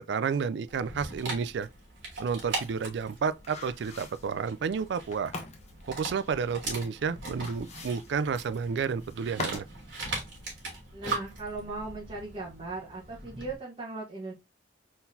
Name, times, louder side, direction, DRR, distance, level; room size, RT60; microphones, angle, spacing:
voice 1, 0.0-1.7 2.2-5.3 5.9-9.6, right 6 dB, 65° right, 0.4 m, -31 dB
Dog, 0.7-13.6, right 3 dB, 85° right, 2.3 m, -40 dB
sound 1, 2.4-9.8 10.1-10.2, left 3 dB, 40° left, 0.9 m, -43 dB
voice 2, 10.9-14.3, right 2 dB, 30° right, 1.2 m, -38 dB
4.2 x 3.9 x 2.6 m
head